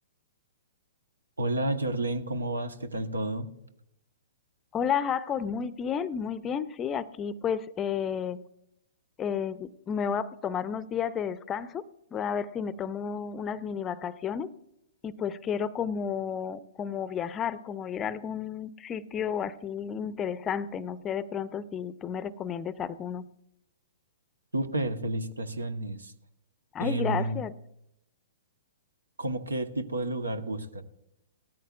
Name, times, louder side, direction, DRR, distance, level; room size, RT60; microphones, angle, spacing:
voice 1, 1.4-3.5 24.5-26.1 26.8-27.4 29.2-30.8, right 2 dB, 85° right, 9 dB, 1.0 m, -31 dB
voice 2, 4.7-8.4 9.2-11.8 12.1-14.5 15.0-23.3 26.7-27.5, left 7 dB, 20° left, 16 dB, 0.5 m, -32 dB
18.0 x 13.5 x 2.4 m, 0.81 s
figure-of-eight pair, 115°, 0 cm